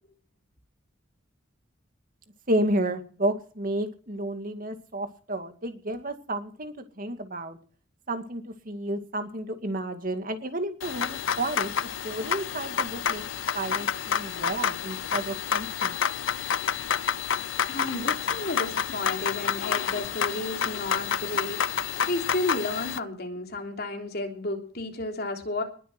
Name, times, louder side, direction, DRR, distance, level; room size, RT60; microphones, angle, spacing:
voice 1, 2.5-7.6 8.1-11.7 12.0-13.2 13.5-16.0, right 1 dB, 45° right, 7 dB, 2.2 m, -31 dB
sound 1, 10.8-23.0, left 8 dB, 70° left, 0.6 m, -29 dB
voice 2, 17.7-25.6, left 2 dB, 50° left, 3 dB, 3.4 m, -32 dB
20.5 x 7.7 x 6.1 m, 0.42 s
head